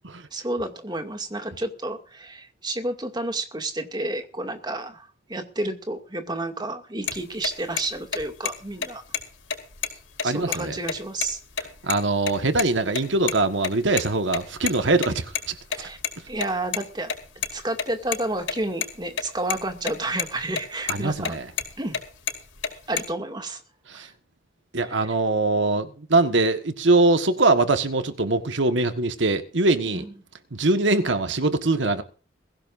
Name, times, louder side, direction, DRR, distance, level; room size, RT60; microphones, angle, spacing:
voice 1, 0.3-9.0 10.2-11.4 15.7-16.0 16.3-21.4 21.8-22.0 22.7-23.6 23.9-24.1 24.8-25.2 29.9-30.1, right 2 dB, 20° right, 2.3 m, -31 dB
sound 1, 7.1-7.2 7.4-7.5 7.8-7.9 8.1-8.5 8.8-8.9 9.1-9.2 9.5-10.6 10.9-11.0 11.2-11.3 11.6-12.0 12.3-12.7 12.9-14.0 14.3-16.8 17.1-18.9 19.2-19.3 19.5-19.9 20.2-20.6 20.9-22.0 22.3-23.0, left 7 dB, 85° left, 4.8 m, -28 dB
voice 2, 10.2-10.8 11.8-15.5 20.9-21.4 23.9-24.1 24.7-30.0 30.5-32.0, right 2 dB, 75° right, 1.5 m, -22 dB
22.0 x 16.0 x 2.6 m
head